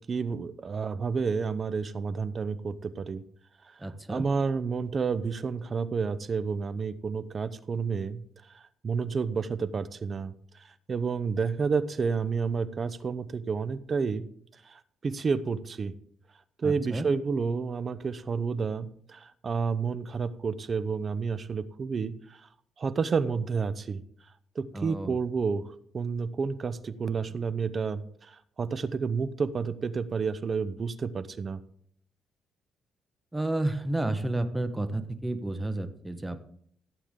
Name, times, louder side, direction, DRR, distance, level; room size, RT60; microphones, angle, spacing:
voice 1, 0.1-3.2 4.1-8.2 8.5-10.3 10.9-14.3 14.7-15.9 16.6-22.4 22.8-24.0 24.6-31.6, right 5 dB, 40° right, 14 dB, 0.8 m, -30 dB
voice 2, 3.8-4.3 16.6-17.1 24.7-25.2 33.3-36.4, right 2 dB, 10° right, 9 dB, 1.2 m, -31 dB
15.0 x 8.4 x 3.7 m, 0.63 s
cardioid pair, 90°, 0 cm